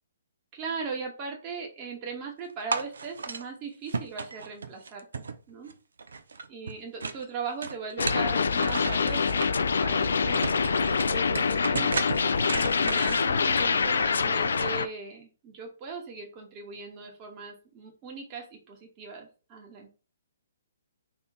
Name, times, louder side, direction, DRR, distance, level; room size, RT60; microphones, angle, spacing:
voice 1, 0.5-5.7 6.5-9.5 9.8-12.0 12.5-19.9, right 5 dB, 30° right, 1 dB, 1.3 m, -39 dB
sound 1, 2.7-3.4 3.9-5.7 6.0-7.2 7.6-9.5 10.0-10.1 10.3-13.2, right 4 dB, 70° right, 0.5 m, -34 dB
sound 2, 8.0-14.9, left 5 dB, 65° left, 0.4 m, -25 dB
3.6 x 2.6 x 3.9 m, 0.36 s
figure-of-eight pair, 130°, 0 cm